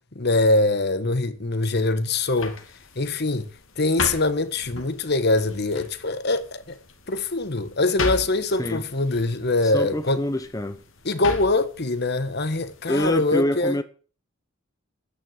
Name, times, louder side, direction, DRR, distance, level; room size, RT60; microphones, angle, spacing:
voice 1, 0.1-2.6 2.9-3.5 3.8-6.8 7.1-10.2 11.0-13.8, left 2 dB, 55° left, 1.4 m, -23 dB
sound 1, 2.0-13.2, left 3 dB, 70° left, 2.4 m, -37 dB
voice 2, 9.6-10.8 12.9-13.8, left 1 dB, 15° left, 0.9 m, -26 dB
10.0 x 9.8 x 8.9 m
head